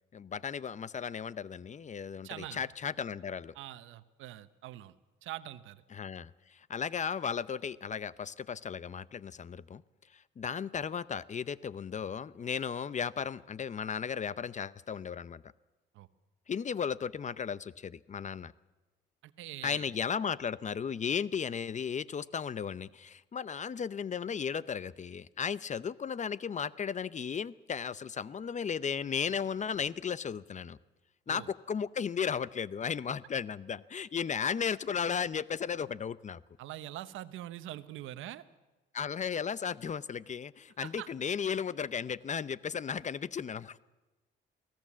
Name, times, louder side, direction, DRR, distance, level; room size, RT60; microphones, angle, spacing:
voice 1, 0.1-3.5 5.9-9.8 10.4-15.4 16.5-18.5 19.6-30.8 31.3-36.4 38.9-43.8, left 7 dB, 35° left, 18 dB, 0.6 m, -35 dB
voice 2, 2.2-2.6 3.5-4.9 5.2-5.8 15.9-16.1 19.4-19.9 31.3-31.5 36.6-38.4 40.8-41.1, right 14 dB, 90° right, 13 dB, 1.0 m, -43 dB
24.0 x 16.5 x 7.4 m, 1.1 s
cardioid pair, 90°, 20 cm